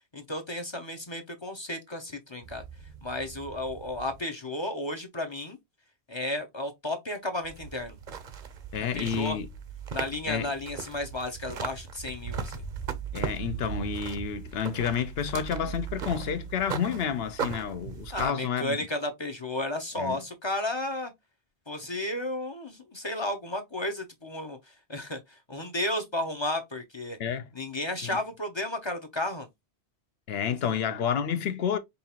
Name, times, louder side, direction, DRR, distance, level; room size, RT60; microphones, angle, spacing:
voice 1, 0.1-2.6 3.0-5.6 6.1-8.0 8.9-9.4 9.9-12.6 18.1-21.1 21.7-27.2 27.5-29.5 30.6-30.7, left 1 dB, 30° left, 0.6 m, -33 dB
sound 1, 2.4-4.2 7.4-18.3, right 6 dB, 50° right, 0.8 m, -38 dB
voice 2, 8.7-9.5 10.3-10.5 13.1-18.8 20.0-20.2 27.2-27.5 28.0-28.2 30.3-31.8, left 7 dB, 70° left, 0.9 m, -30 dB
5.4 x 2.4 x 2.8 m
omnidirectional pair, 1.1 m